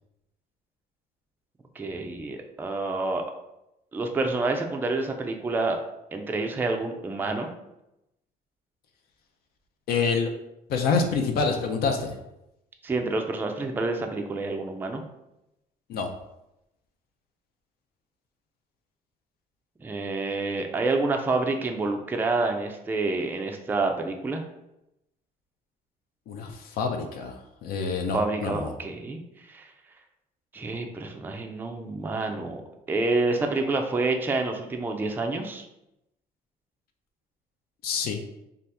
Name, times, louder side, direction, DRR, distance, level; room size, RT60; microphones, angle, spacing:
voice 1, 1.8-3.2 3.9-5.8 6.1-7.5 12.8-15.0 19.8-24.4 28.1-29.2 29.5-29.6 30.5-32.6 32.9-35.6, right 3 dB, 10° right, 4 dB, 0.3 m, -28 dB
voice 2, 9.9-10.3 10.7-12.2 15.9-16.1 26.3-28.7 37.8-38.3, left 5 dB, 65° left, 4 dB, 0.4 m, -27 dB
2.7 x 2.3 x 3.3 m, 0.88 s
cardioid pair, 110°, 17 cm